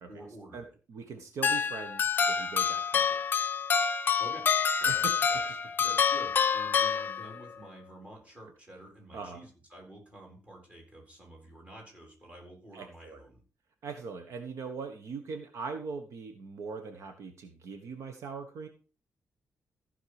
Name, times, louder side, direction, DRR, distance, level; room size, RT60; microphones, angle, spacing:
voice 1, 0.1-0.7 4.2-4.4 4.8-5.6 5.8-13.4, right 1 dB, 25° right, -1 dB, 4.1 m, -49 dB
voice 2, 0.9-3.3 4.9-5.1 9.1-9.4 12.7-13.2 13.8-18.7, right 5 dB, 70° right, 6 dB, 1.3 m, -41 dB
sound 1, 1.4-7.6, left 6 dB, 40° left, 0.5 m, -27 dB
14.5 x 5.7 x 4.9 m, 0.37 s
wide cardioid pair, 165°, 5 cm